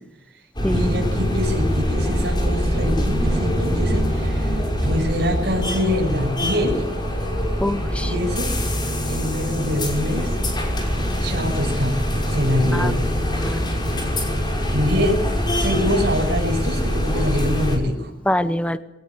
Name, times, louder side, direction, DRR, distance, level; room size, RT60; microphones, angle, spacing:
sound 1, 0.6-17.8, equal, 25° left, 5.7 m, -23 dB
voice 1, 0.7-6.9 8.0-8.5 9.1-10.4 11.2-12.0 12.3-13.0 13.4-13.5 14.4-15.2 15.5-18.1, left 1 dB, 60° right, -2 dB, 6.3 m, -25 dB
sound 2, 1.1-15.8, right 1 dB, 45° right, 5.6 m, -41 dB
voice 2, 7.6-8.1 12.7-12.9 13.4-13.8 18.3-18.8, left 1 dB, 5° left, 11 dB, 0.8 m, -24 dB
22.5 x 18.5 x 8.8 m, 0.93 s
head